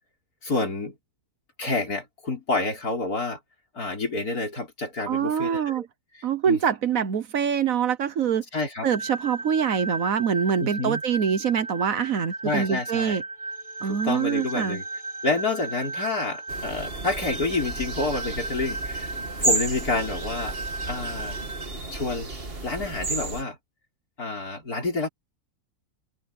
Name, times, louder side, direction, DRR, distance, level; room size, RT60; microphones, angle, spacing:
voice 1, 0.4-1.0 1.6-3.4 3.7-5.9 6.5-6.6 8.5-8.9 10.6-11.0 12.4-13.2 13.9-14.8 15.2-19.1 19.4-20.6 20.9-21.4 21.9-22.3 22.6-23.6 24.2-25.1, left 3 dB, 75° left, 5.7 m, -28 dB
voice 2, 5.1-5.8 6.2-8.4 8.8-13.2 13.8-14.8, right 7 dB, 65° right, 1.4 m, -25 dB
sound 1, 8.9-21.7, right 2 dB, 20° right, 6.2 m, -35 dB
sound 2, 16.5-23.4, right 2 dB, 40° right, 2.5 m, -32 dB
omnidirectional pair, 1.6 m